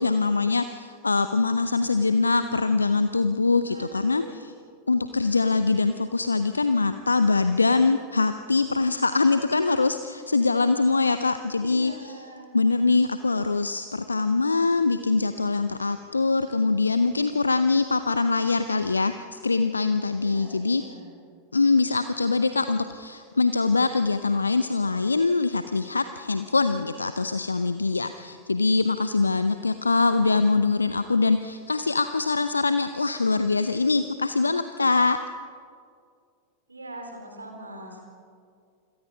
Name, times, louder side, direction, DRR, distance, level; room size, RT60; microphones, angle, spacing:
voice 1, 0.0-4.2 4.9-12.2 12.5-20.8 21.5-35.2, left 3 dB, 80° left, 11 dB, 0.7 m, -23 dB
voice 2, 3.6-4.3 11.6-12.5 20.1-21.1 36.7-38.0, right 1 dB, 80° right, 3 dB, 4.1 m, -42 dB
28.0 x 22.0 x 5.5 m, 2.3 s
figure-of-eight pair, 90°, 0 cm